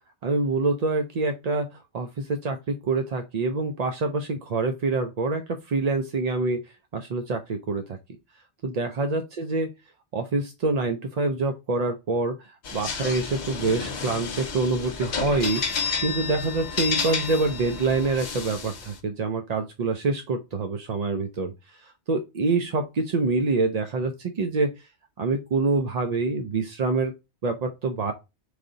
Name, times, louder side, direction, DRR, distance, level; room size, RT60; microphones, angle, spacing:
voice 1, 0.2-1.7 1.9-8.0 8.6-9.7 10.1-24.7 25.2-27.1 27.4-28.1, right 3 dB, 55° right, 0.5 m, -26 dB
sound 1, 12.6-19.0, left 5 dB, 50° left, 0.7 m, -31 dB
4.9 x 2.6 x 3.6 m
omnidirectional pair, 1.1 m